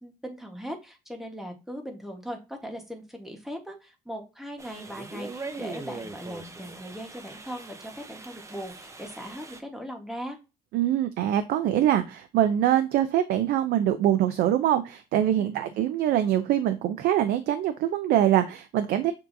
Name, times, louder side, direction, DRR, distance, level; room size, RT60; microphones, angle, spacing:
voice 1, 0.0-10.4 15.4-15.6, equal, ahead, 2 dB, 1.2 m, -39 dB
sound 1, 4.6-9.6, right 3 dB, 20° right, 0.7 m, -41 dB
voice 2, 10.7-19.1, right 11 dB, 70° right, 8 dB, 0.5 m, -24 dB
6.9 x 2.8 x 2.6 m, 0.29 s
cardioid pair, 110°, 17 cm